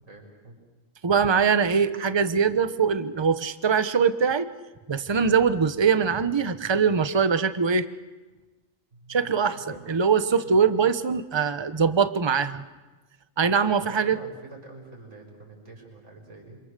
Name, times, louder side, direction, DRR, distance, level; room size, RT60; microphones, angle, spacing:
voice 1, 0.0-0.6 8.9-9.9 10.3-10.8 13.4-16.6, right 2 dB, 65° right, 0 dB, 7.0 m, -46 dB
voice 2, 1.0-4.5 4.9-7.9 9.1-9.6 9.9-12.6 13.4-14.2, right 6 dB, 25° right, 11 dB, 0.8 m, -22 dB
27.5 x 26.5 x 6.7 m, 1.2 s
omnidirectional pair, 1.4 m